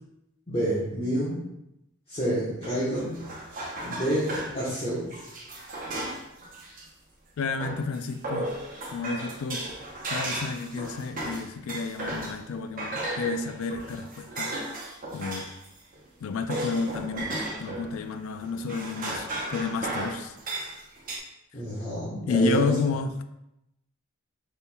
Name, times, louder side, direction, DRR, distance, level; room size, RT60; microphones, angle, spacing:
voice 1, 0.5-1.4 2.1-3.2 3.8-5.1 21.5-22.7, right 1 dB, 25° left, -10 dB, 1.1 m, -28 dB
sound 1, 2.6-6.8 7.6-12.5 12.8-15.7 15.9-17.9 18.4-21.2, right 2 dB, 40° right, 0.8 m, -35 dB
voice 2, 7.4-8.6 8.9-9.7 10.1-14.6 15.1-15.5 16.2-20.4 22.2-23.1, left 4 dB, 75° left, 9 dB, 0.4 m, -31 dB
5.3 x 4.2 x 2.3 m, 0.85 s
head